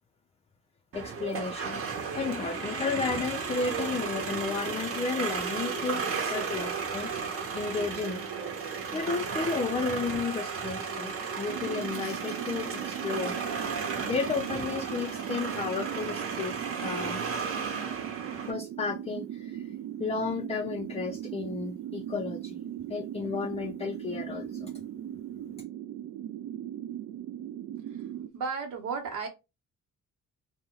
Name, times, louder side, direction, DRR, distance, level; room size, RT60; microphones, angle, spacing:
voice 1, 0.9-1.8 2.1-6.1 6.3-8.2 8.9-13.4 14.0-17.2 18.5-19.7 20.0-22.6 22.9-24.7, left 4 dB, 20° left, 0.3 m, -33 dB
sound 1, 0.9-18.5, right 5 dB, 50° right, 0.9 m, -34 dB
sound 2, 11.5-28.3, right 11 dB, 65° right, 0.4 m, -39 dB
voice 2, 28.3-29.3, right 5 dB, 85° right, 1.0 m, -34 dB
2.7 x 2.1 x 3.6 m
cardioid pair, 90°, 30 cm